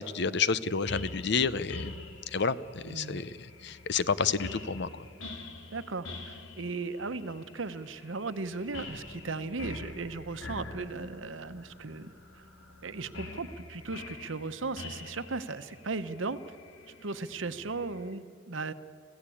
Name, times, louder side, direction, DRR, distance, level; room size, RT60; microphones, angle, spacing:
voice 1, 0.0-1.9 2.3-4.9, left 5 dB, 60° left, 16 dB, 0.7 m, -30 dB
sound 1, 0.9-18.1, left 3 dB, 85° left, 2.3 m, -46 dB
voice 2, 2.8-3.2 5.7-12.4 12.8-16.4 17.0-18.7, right 3 dB, 75° right, 11 dB, 1.0 m, -37 dB
26.0 x 16.0 x 8.5 m, 2.2 s
head